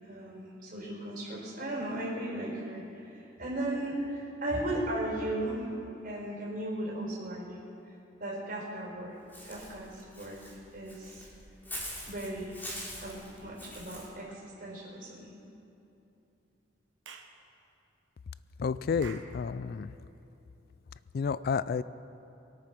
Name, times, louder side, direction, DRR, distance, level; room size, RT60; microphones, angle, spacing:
voice 1, 0.0-5.8 6.0-7.7 8.2-9.2 9.4-10.4 10.7-11.3 12.1-12.6 13.0-15.3, right 1 dB, 50° right, -3 dB, 4.6 m, -36 dB
Walk footsteps / Bird, 9.3-14.1, equal, 10° left, 3.3 m, -43 dB
Clapping / Chirp tweet, 17.0-17.4 19.0-19.4, right 5 dB, 80° right, 1.3 m, -47 dB
voice 2, 18.6-19.9 21.1-21.8, left 5 dB, 55° left, 16 dB, 0.3 m, -30 dB
23.5 x 8.9 x 6.0 m, 2.9 s
head